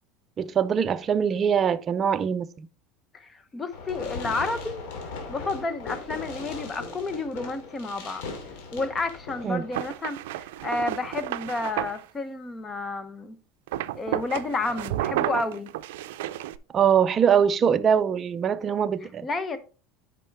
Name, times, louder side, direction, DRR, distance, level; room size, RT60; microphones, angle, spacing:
voice 1, 0.4-2.7 9.4-9.6 16.7-19.3, right 7 dB, 30° right, 0.5 m, -23 dB
voice 2, 3.1-4.8 5.3-8.2 8.7-13.4 13.9-15.7 19.2-19.6, left 3 dB, 20° left, 0.9 m, -31 dB
Fireworks, 3.7-9.7, left 4 dB, 75° left, 2.6 m, -38 dB
sound 1, 9.7-12.0 13.7-16.6, right 14 dB, 85° right, 0.4 m, -31 dB
9.2 x 5.3 x 3.4 m
supercardioid pair, 130°, 0 cm